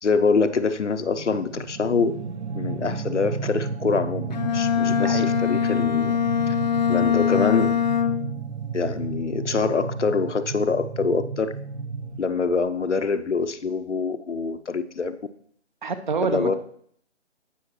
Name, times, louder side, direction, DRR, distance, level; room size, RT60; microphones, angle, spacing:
voice 1, 0.0-2.2 2.5-6.2 6.5-6.6 6.9-7.8 8.7-11.5 12.2-15.2 16.2-16.5, left 4 dB, 85° left, 9 dB, 0.8 m, -25 dB
sound 1, 1.1-12.2, right 4 dB, 75° right, 0.7 m, -32 dB
Bowed string instrument, 4.3-8.4, left 9 dB, 40° left, 0.6 m, -23 dB
voice 2, 15.8-16.5, right 5 dB, 45° right, 11 dB, 0.9 m, -26 dB
17.5 x 6.3 x 3.0 m, 0.63 s
figure-of-eight pair, 145°, 34 cm